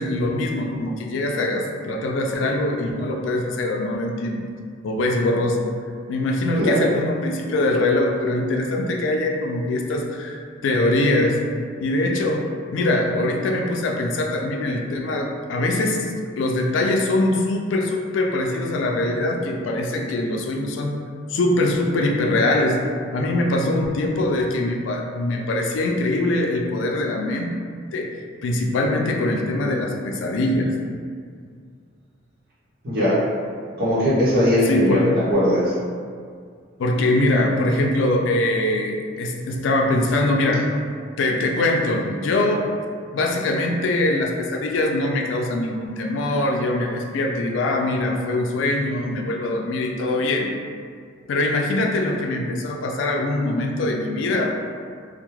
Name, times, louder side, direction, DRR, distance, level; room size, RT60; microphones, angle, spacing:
voice 1, 0.0-4.4 4.8-5.7 6.1-11.4 11.8-16.0 16.4-20.9 21.3-22.8 23.1-27.5 27.9-28.1 28.4-30.7 34.7-35.1 36.8-40.6 41.2-42.6 43.1-50.5 51.3-54.5, left 2 dB, 80° left, 1 dB, 0.3 m, -22 dB
voice 2, 32.8-33.1 33.8-35.0 35.3-35.6, left 1 dB, 55° right, -9 dB, 0.8 m, -19 dB
2.2 x 2.0 x 3.0 m, 2.1 s
head